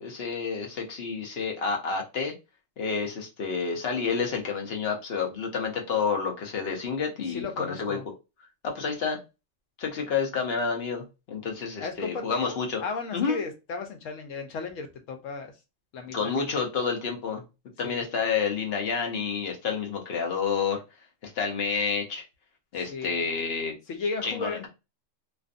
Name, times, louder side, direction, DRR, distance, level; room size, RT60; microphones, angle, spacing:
voice 1, 0.0-2.3 2.8-8.0 8.6-9.2 9.8-12.8 13.1-13.4 16.1-17.4 17.8-20.8 21.2-22.2 22.7-23.7 24.2-24.7, left 5 dB, 55° left, 2 dB, 0.9 m, -29 dB
voice 2, 7.3-8.1 11.8-15.5 15.9-16.6 17.8-18.0 22.9-23.3 23.9-24.7, left 4 dB, 85° left, 5 dB, 1.0 m, -35 dB
2.5 x 2.4 x 2.5 m, 0.27 s
omnidirectional pair, 1.3 m